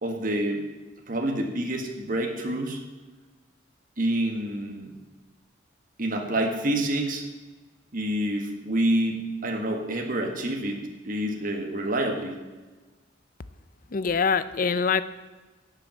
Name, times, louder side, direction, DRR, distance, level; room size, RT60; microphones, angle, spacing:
voice 1, 0.0-0.6 1.1-2.8 4.0-4.9 6.0-7.2 7.9-12.4, right 1 dB, 45° right, 2 dB, 1.7 m, -27 dB
voice 2, 13.9-15.0, left 5 dB, 45° left, 14 dB, 0.5 m, -24 dB
11.5 x 7.9 x 7.7 m, 1.3 s
head